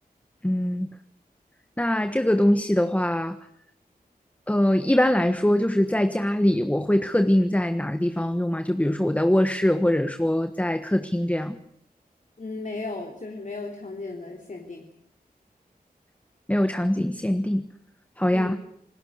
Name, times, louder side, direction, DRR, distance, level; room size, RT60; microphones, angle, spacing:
voice 1, 0.4-0.9 1.8-3.4 4.5-11.6 16.5-17.6 18.2-18.6, left 1 dB, 10° left, 9 dB, 1.3 m, -22 dB
voice 2, 12.4-14.8 18.3-18.6, left 3 dB, 55° left, 2 dB, 3.5 m, -35 dB
28.0 x 21.0 x 6.6 m, 0.72 s
wide cardioid pair, 90°, 16 cm